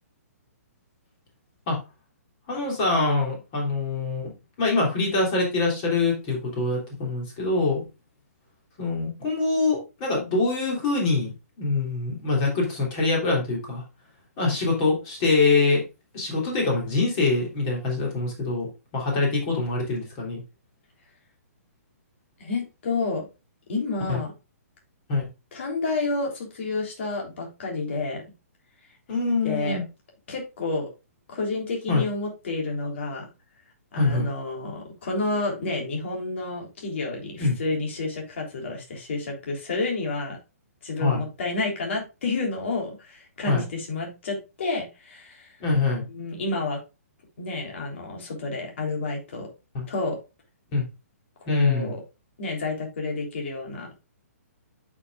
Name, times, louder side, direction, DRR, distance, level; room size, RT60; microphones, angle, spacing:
voice 1, 2.5-4.3 4.6-7.8 8.8-11.3 11.6-13.8 14.4-15.8 16.1-18.7 18.9-20.4 24.1-24.2 25.1-25.3 29.1-29.8 31.9-32.1 33.9-34.3 37.4-37.6 41.0-41.2 43.5-43.6 45.6-46.0 49.7-49.9 50.7-50.8 51.5-51.9, left 3 dB, 25° left, -1 dB, 3.3 m, -24 dB
voice 2, 22.4-23.3 23.7-24.3 25.5-28.2 29.4-29.8 30.3-30.9 31.3-33.3 33.9-40.4 40.8-45.5 46.1-46.8 47.4-49.5 49.9-50.2 51.4-52.0 52.4-53.9, left 3 dB, 50° left, 0 dB, 3.5 m, -30 dB
8.9 x 6.3 x 2.5 m, 0.27 s
hypercardioid pair, 175°, 8 cm